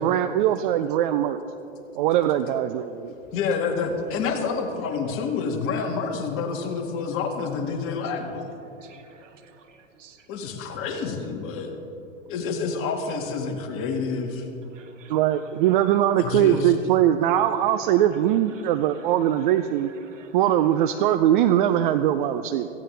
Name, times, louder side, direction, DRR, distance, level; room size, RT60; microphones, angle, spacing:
voice 1, 0.0-1.4 2.0-3.1 15.1-19.9 20.3-22.7, right 11 dB, 40° right, 11 dB, 0.5 m, -21 dB
voice 2, 3.3-8.5 10.3-11.7 12.3-14.5 16.2-16.7, left 5 dB, 35° left, 2 dB, 2.0 m, -28 dB
voice 3, 8.8-10.2 14.7-15.1 20.1-20.3, right 7 dB, 70° right, 6 dB, 1.5 m, -53 dB
17.5 x 15.5 x 3.4 m, 2.9 s
hypercardioid pair, 115°, 38 cm